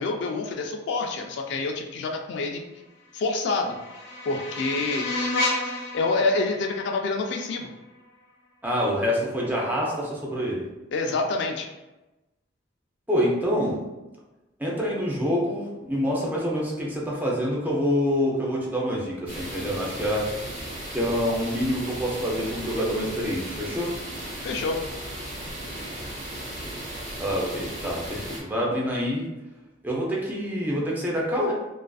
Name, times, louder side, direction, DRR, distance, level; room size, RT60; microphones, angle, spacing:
voice 1, 0.0-2.6 3.1-3.8 4.3-5.1 5.9-7.7 10.9-11.7 24.4-24.8, left 3 dB, 65° left, 3 dB, 0.3 m, -27 dB
sound 1, 3.1-8.1, left 2 dB, 90° left, 0.7 m, -32 dB
voice 2, 8.6-10.6 13.1-13.8 14.6-20.3 20.9-23.9 27.2-29.3 29.8-31.5, equal, 10° right, -4 dB, 0.5 m, -26 dB
sound 2, 19.3-28.4, right 1 dB, 40° right, 0.7 m, -36 dB
2.4 x 2.3 x 2.3 m, 1.1 s
head